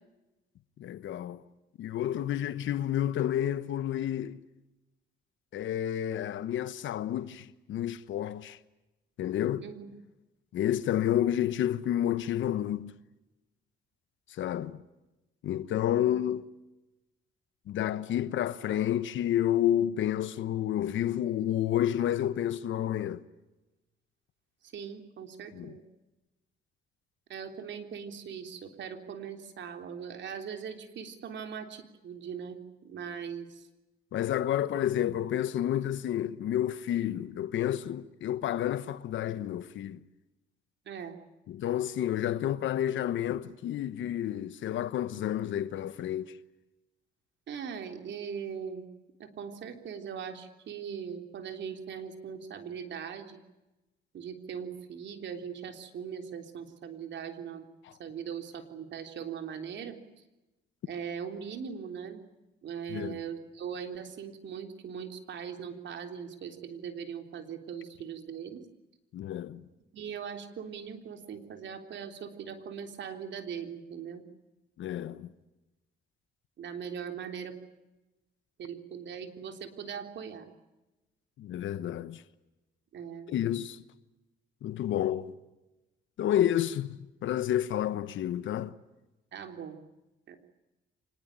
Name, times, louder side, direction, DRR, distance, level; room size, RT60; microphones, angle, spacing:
voice 1, 0.8-1.4 1.8-4.4 5.5-8.6 9.2-9.6 10.5-12.9 14.3-14.8 15.4-16.4 17.7-23.2 25.5-25.7 34.1-40.0 41.5-46.3 57.8-57.9 62.9-63.2 69.1-69.6 74.8-75.3 81.4-82.2 83.3-83.8 84.6-85.3 86.2-88.7, left 11 dB, 75° left, 1.1 m, -30 dB
voice 2, 24.7-25.8 27.3-33.6 40.9-41.1 47.5-48.9 49.2-53.4 54.1-57.6 58.0-60.0 60.9-62.2 62.6-68.6 69.9-74.2 76.6-77.6 78.6-80.5 82.9-83.3 89.3-89.8 90.3-90.4, right 7 dB, 65° right, 3.6 m, -40 dB
25.5 x 20.5 x 8.9 m
cardioid pair, 90°, 20 cm